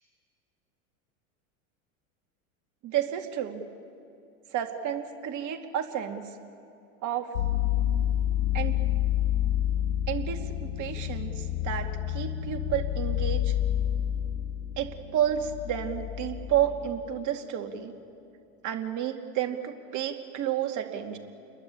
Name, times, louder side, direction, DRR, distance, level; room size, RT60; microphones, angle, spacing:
voice 1, 2.8-3.6 4.5-6.2 7.0-7.3 8.5-8.7 10.1-13.5 14.8-17.9 18.6-21.2, right 10 dB, 45° right, 5 dB, 2.5 m, -31 dB
sound 1, 7.3-16.9, left 12 dB, 90° left, 2.3 m, -29 dB
29.0 x 22.5 x 8.6 m, 2.7 s
hypercardioid pair, 100°, 41 cm